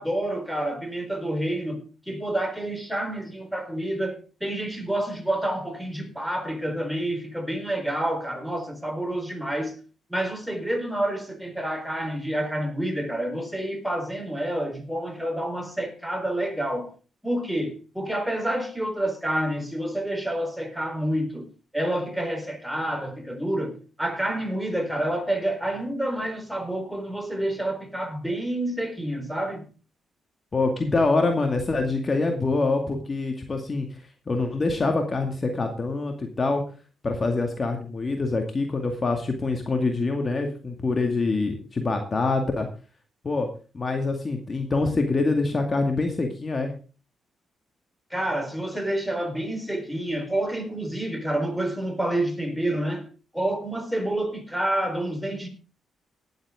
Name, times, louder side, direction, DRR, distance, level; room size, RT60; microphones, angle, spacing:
voice 1, 0.0-9.8 10.1-16.9 17.2-21.5 21.7-29.7 48.1-53.1 53.3-55.5, right 1 dB, ahead, 4.1 m, -28 dB
voice 2, 30.5-34.0 34.3-36.6 37.0-42.7 43.2-43.5 43.7-46.7, left 3 dB, 40° left, 2.1 m, -25 dB
18.5 x 8.0 x 3.7 m
hypercardioid pair, 45°, 0 cm